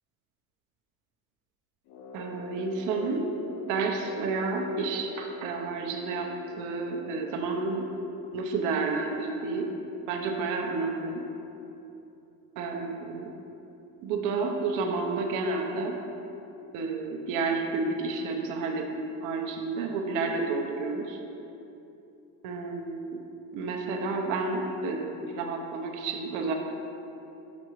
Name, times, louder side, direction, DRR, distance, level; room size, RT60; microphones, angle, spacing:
Brass instrument, 1.9-7.5, left 2 dB, 50° left, 0.5 m, -44 dB
voice 1, 2.1-3.3 3.7-6.3 6.6-7.9 8.3-9.7 10.1-11.2 12.6-13.3 14.0-16.0 16.7-21.2 22.4-23.2 23.5-26.5, right 3 dB, 55° right, 2 dB, 0.8 m, -30 dB
6.5 x 6.1 x 3.1 m, 2.9 s
cardioid pair, 170°, 37 cm